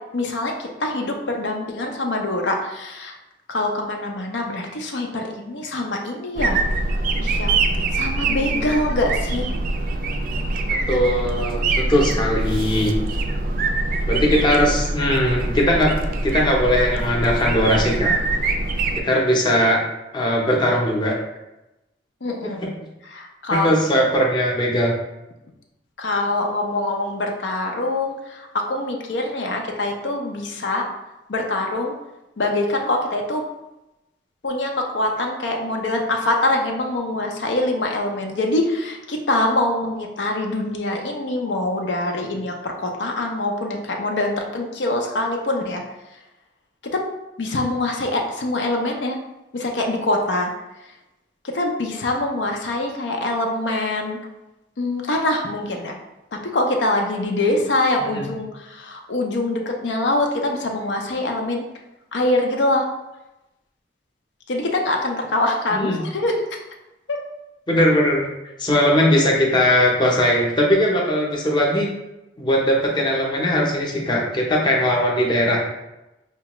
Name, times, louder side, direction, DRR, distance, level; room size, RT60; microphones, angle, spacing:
voice 1, 0.1-3.1 3.5-6.6 7.2-7.5 7.9-9.5 22.2-22.6 23.1-23.7 26.0-30.8 31.3-31.9 32.4-33.4 34.4-45.8 46.9-47.0 47.4-49.2 49.5-50.5 51.5-54.2 54.8-56.0 56.5-61.6 62.1-62.9 64.5-66.5 67.1-67.2, left 2 dB, 85° left, 2 dB, 0.5 m, -24 dB
sound 1, 6.4-19.0, right 2 dB, 50° right, 0.3 m, -24 dB
voice 2, 10.9-13.0 14.1-15.9 16.2-18.1 18.9-19.8 20.1-21.2 23.5-24.9 58.0-58.3 65.7-66.0 67.7-68.3 68.6-71.9 72.4-75.6, equal, 25° left, -2 dB, 0.6 m, -19 dB
4.7 x 2.2 x 3.0 m, 0.96 s
head